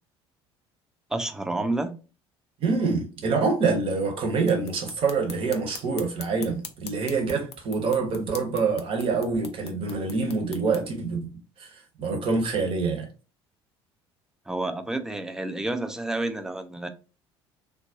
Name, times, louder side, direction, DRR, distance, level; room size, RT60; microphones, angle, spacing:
voice 1, 1.1-1.9 14.5-16.9, right 2 dB, 5° right, 0.4 m, -29 dB
voice 2, 2.6-11.3 11.6-11.7 12.0-13.1, right 4 dB, 40° right, 0.8 m, -26 dB
sound 1, 4.4-10.8, left 6 dB, 75° left, 0.4 m, -44 dB
3.5 x 2.2 x 2.5 m
figure-of-eight pair, 55°, 14 cm